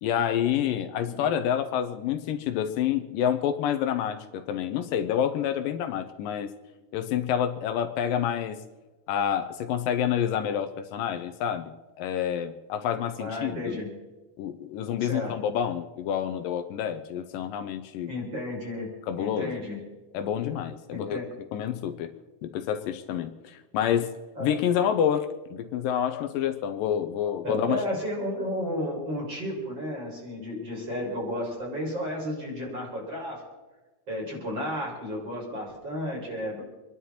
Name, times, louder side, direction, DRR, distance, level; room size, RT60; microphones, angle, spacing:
voice 1, 0.0-6.5 6.9-8.6 9.1-13.7 14.4-18.1 19.1-19.6 20.1-21.2 21.5-22.1 22.4-27.8, left 9 dB, 80° left, 7 dB, 2.4 m, -28 dB
voice 2, 13.2-13.9 15.0-15.4 18.1-18.9 19.2-19.8 20.9-21.3 24.4-24.5 27.4-33.4 34.1-36.6, left 1 dB, 30° right, -2 dB, 5.0 m, -32 dB
27.0 x 11.0 x 4.3 m, 1.1 s
omnidirectional pair, 4.0 m